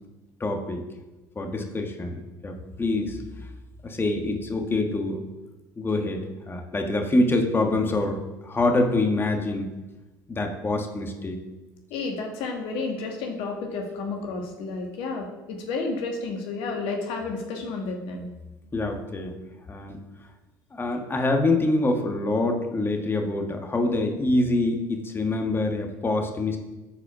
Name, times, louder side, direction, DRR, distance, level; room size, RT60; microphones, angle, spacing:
voice 1, 0.4-0.8 1.3-3.2 3.8-5.2 5.8-9.7 10.3-11.4 18.7-19.3 19.7-20.0 20.7-26.6, left 2 dB, 20° left, 4 dB, 1.4 m, -25 dB
voice 2, 11.9-18.3, left 3 dB, 65° left, 2 dB, 1.4 m, -31 dB
8.8 x 4.8 x 5.9 m, 1.1 s
hypercardioid pair, 65°, 10 cm